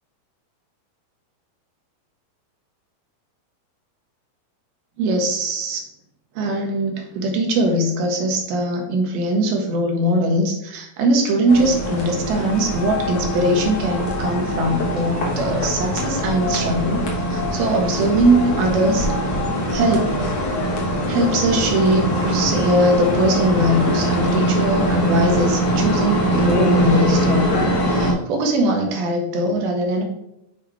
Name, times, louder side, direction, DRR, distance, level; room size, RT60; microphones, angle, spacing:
voice 1, 5.0-5.8 6.4-19.1 19.7-20.2 21.1-30.0, right 1 dB, 85° right, 2 dB, 2.9 m, -21 dB
sound 1, 11.5-28.1, equal, 60° left, 1.4 m, -22 dB
7.7 x 4.9 x 3.2 m, 0.80 s
omnidirectional pair, 4.2 m